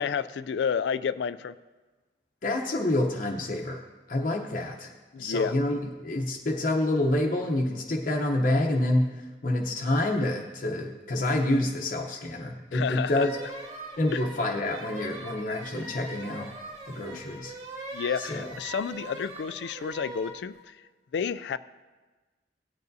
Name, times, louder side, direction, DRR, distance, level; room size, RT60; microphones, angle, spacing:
voice 1, 0.0-1.6 5.1-5.6 12.7-13.3 14.1-14.2 17.1-17.2 17.9-20.5 21.1-21.6, left 6 dB, 70° left, 15 dB, 0.3 m, -30 dB
voice 2, 2.4-3.8 4.1-4.9 5.2-9.1 9.4-13.3 14.0-16.5 16.9-17.5 18.2-18.5, left 1 dB, 50° left, 1 dB, 0.8 m, -27 dB
sound 1, 12.9-20.4, right 2 dB, 40° right, 1.6 m, -41 dB
17.5 x 9.3 x 2.7 m, 1.3 s
head